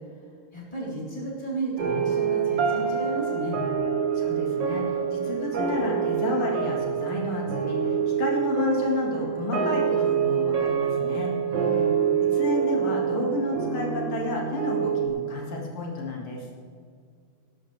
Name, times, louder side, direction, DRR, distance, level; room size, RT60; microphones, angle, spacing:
voice 1, 0.5-3.6 11.5-12.0, right 2 dB, 15° left, -6 dB, 4.0 m, -33 dB
sound 1, 1.8-15.1, right 7 dB, 60° right, 2.2 m, -26 dB
voice 2, 4.1-11.3 12.2-16.5, left 3 dB, 85° left, -2 dB, 2.9 m, -31 dB
19.5 x 11.5 x 3.4 m, 2.2 s
omnidirectional pair, 2.3 m